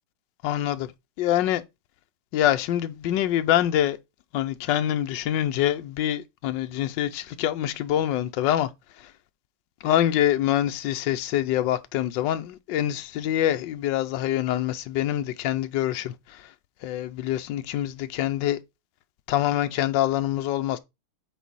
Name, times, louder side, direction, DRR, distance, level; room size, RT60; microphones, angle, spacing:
voice 1, 0.4-0.9 1.2-1.6 2.3-4.0 4.3-8.7 9.8-16.4 16.8-18.6 19.3-20.8, left 12 dB, 70° left, 1.3 m, -25 dB
8.3 x 4.1 x 4.0 m
omnidirectional pair, 2.1 m